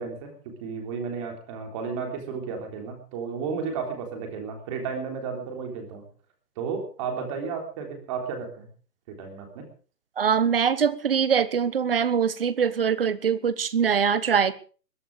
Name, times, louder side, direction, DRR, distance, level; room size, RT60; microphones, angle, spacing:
voice 1, 0.0-6.1 6.6-8.7 9.1-9.7, right 5 dB, 20° right, 4 dB, 3.6 m, -33 dB
voice 2, 10.2-14.5, right 7 dB, 35° right, 17 dB, 1.1 m, -23 dB
21.5 x 11.5 x 4.9 m, 0.40 s
hypercardioid pair, 165°, 48 cm